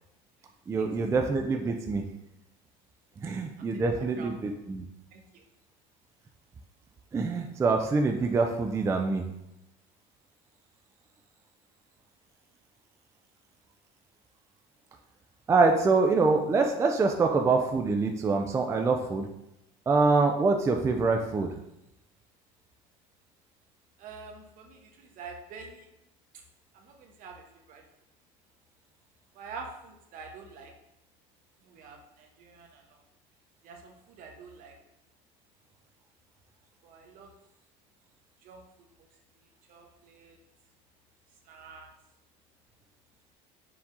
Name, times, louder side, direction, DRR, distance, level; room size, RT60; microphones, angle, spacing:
voice 1, 0.7-2.0 3.2-4.8 7.1-9.2 15.5-19.2 19.9-21.5, right 4 dB, 20° right, 3 dB, 0.3 m, -25 dB
voice 2, 3.6-4.3 5.1-5.4 24.0-25.9 26.7-27.8 29.3-30.7 31.6-33.0 33.6-34.7 36.8-37.3 38.4-38.6 39.0-39.1 39.4-40.4 41.4-41.9, right 4 dB, 60° right, 2 dB, 0.9 m, -47 dB
4.7 x 2.7 x 3.6 m, 0.84 s
cardioid pair, 120°, 16 cm